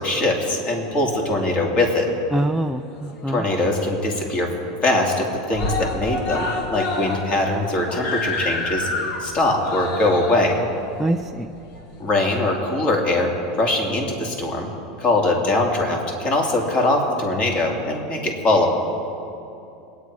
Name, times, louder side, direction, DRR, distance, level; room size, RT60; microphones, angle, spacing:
voice 1, 0.0-2.1 3.3-4.5 4.8-8.9 9.2-10.6 12.0-13.3 13.6-14.7 15.0-18.7, left 2 dB, 35° left, 1 dB, 2.6 m, -21 dB
voice 2, 2.3-3.4 11.0-11.5, right 1 dB, 5° right, 3 dB, 0.4 m, -24 dB
Screaming, 2.6-3.5 3.9-4.0 4.3-4.4 4.7-5.2 5.5-12.3 13.2-13.3, left 2 dB, 55° left, 2.1 m, -29 dB
21.5 x 9.5 x 4.8 m, 2.7 s
supercardioid pair, 125°, 3 cm